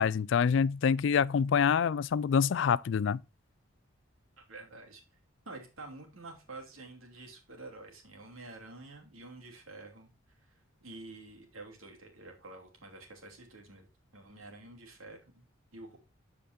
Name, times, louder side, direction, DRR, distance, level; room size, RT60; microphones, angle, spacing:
voice 1, 0.0-3.2, left 6 dB, 65° left, 0.3 m, -26 dB
voice 2, 4.4-5.0 5.4-10.1 10.4-10.5 10.8-13.9 14.1-15.4 15.7-16.0, right 2 dB, 85° right, 2.8 m, -48 dB
13.5 x 5.1 x 2.7 m
head